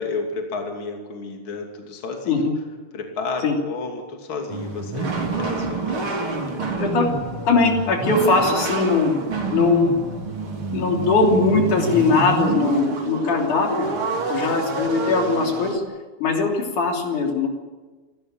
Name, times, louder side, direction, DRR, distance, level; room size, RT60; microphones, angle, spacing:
voice 1, 0.0-2.5 2.9-6.7 13.6-14.0 14.3-14.7, left 3 dB, 40° left, 2 dB, 3.4 m, -32 dB
sound 1, 4.5-15.8, right 4 dB, 45° right, 3.4 m, -27 dB
voice 2, 7.4-9.1 9.5-9.9 10.7-13.9 14.3-15.8 16.2-17.5, left 4 dB, 75° left, 1 dB, 4.7 m, -20 dB
28.0 x 13.5 x 9.0 m, 1.3 s
omnidirectional pair, 3.6 m